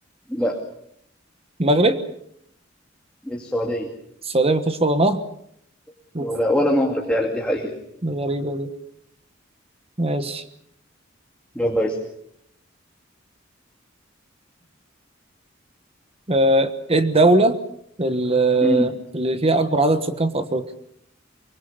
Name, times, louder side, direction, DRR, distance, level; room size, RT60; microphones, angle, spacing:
voice 1, 1.6-2.0 4.2-5.2 6.1-6.3 8.0-8.7 10.0-10.4 16.3-17.6 18.0-20.6, right 2 dB, 30° right, 10 dB, 1.3 m, -20 dB
voice 2, 3.3-3.9 6.2-7.7 11.6-12.0 18.6-18.8, equal, 5° left, 0 dB, 2.4 m, -22 dB
24.0 x 23.0 x 6.8 m, 0.72 s
head